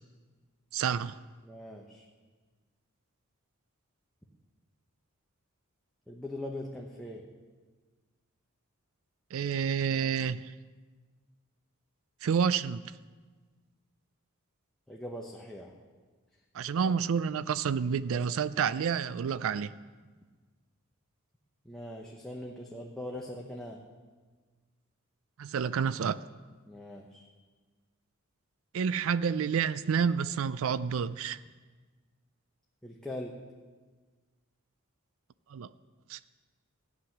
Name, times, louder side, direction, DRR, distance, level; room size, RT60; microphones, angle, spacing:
voice 1, 0.7-1.2 9.3-10.5 12.2-12.8 16.5-19.7 25.4-26.2 28.7-31.4 35.5-35.7 36.1-36.2, right 7 dB, 65° right, 16 dB, 0.4 m, -29 dB
voice 2, 1.4-2.0 6.1-7.2 14.9-15.7 16.7-16.9 21.6-23.8 26.6-27.2 32.8-33.4, left 1 dB, 5° left, -2 dB, 0.9 m, -41 dB
14.5 x 9.7 x 5.9 m, 1.4 s
head